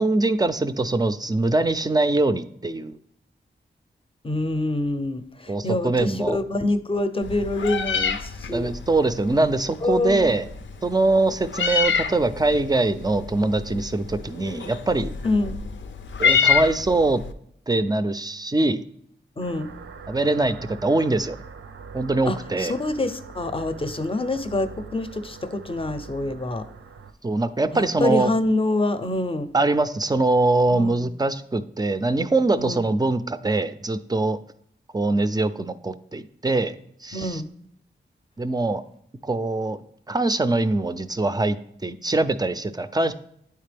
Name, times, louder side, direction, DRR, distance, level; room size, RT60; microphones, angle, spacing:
voice 1, 0.0-3.0 5.5-6.4 8.5-10.5 10.8-15.1 16.2-17.2 17.7-18.8 20.1-21.4 21.9-22.7 27.2-28.3 29.5-34.4 34.9-37.4 38.4-38.8 39.2-39.8 40.1-43.1, right 2 dB, 20° right, 12 dB, 0.4 m, -23 dB
voice 2, 4.2-8.7 9.8-10.3 15.2-15.6 19.4-19.7 22.3-26.6 27.7-29.5 30.7-31.1 32.6-32.8 37.1-37.5, left 2 dB, 25° left, 10 dB, 0.6 m, -26 dB
Meow, 7.2-17.3, left 6 dB, 70° left, 0.5 m, -27 dB
sound 1, 19.4-27.1, right 5 dB, 80° right, 0.5 m, -42 dB
9.0 x 3.3 x 3.4 m, 0.70 s
cardioid pair, 55°, 20 cm